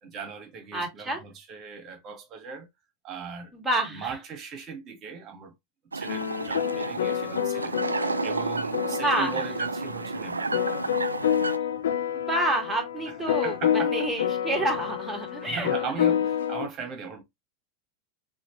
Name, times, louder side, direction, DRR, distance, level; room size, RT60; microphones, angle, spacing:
voice 1, 0.0-2.7 3.0-3.5 3.9-5.5 5.9-10.5 13.4-13.9 15.4-17.2, right 6 dB, 35° right, 1.6 m, -38 dB
voice 2, 0.7-1.2 3.5-4.1 8.9-9.4 12.1-15.7 16.1-16.2, right 1 dB, 10° right, 2.3 m, -28 dB
sound 1, 5.9-11.6, right 3 dB, 80° right, 0.3 m, -31 dB
sound 2, 6.1-16.7, left 9 dB, 65° left, 0.5 m, -28 dB
6.2 x 2.7 x 3.1 m
figure-of-eight pair, 85°, 0 cm